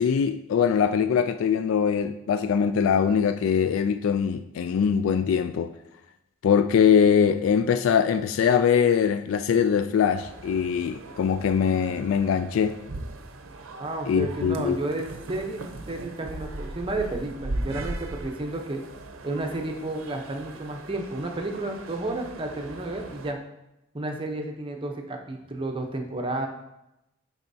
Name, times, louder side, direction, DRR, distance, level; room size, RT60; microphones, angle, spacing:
voice 1, 0.0-5.7 6.4-12.7 14.1-14.8, left 7 dB, 80° left, 10 dB, 0.3 m, -22 dB
sound 1, 10.1-23.3, right 2 dB, 85° right, 0.6 m, -39 dB
voice 2, 13.8-18.8 19.2-23.4 23.9-26.5, right 2 dB, 25° right, 3 dB, 0.7 m, -32 dB
10.0 x 4.1 x 2.7 m, 0.87 s
head